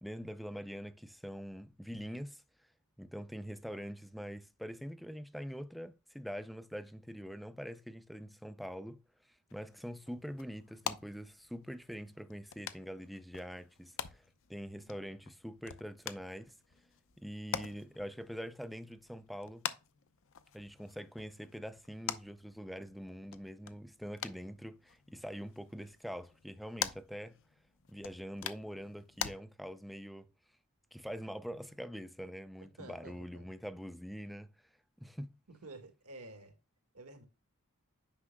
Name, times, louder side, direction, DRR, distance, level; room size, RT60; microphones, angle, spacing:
voice 1, 0.0-2.4 3.0-16.6 17.2-19.7 20.5-27.4 27.9-30.3 30.9-34.5 35.0-35.4, equal, ahead, 0.4 m, -44 dB
sound 1, 9.5-29.3, left 8 dB, 60° left, 0.7 m, -46 dB
voice 2, 32.8-33.5 35.5-36.5 36.9-37.3, right 2 dB, 85° right, 1.8 m, -51 dB
9.8 x 6.1 x 2.2 m
head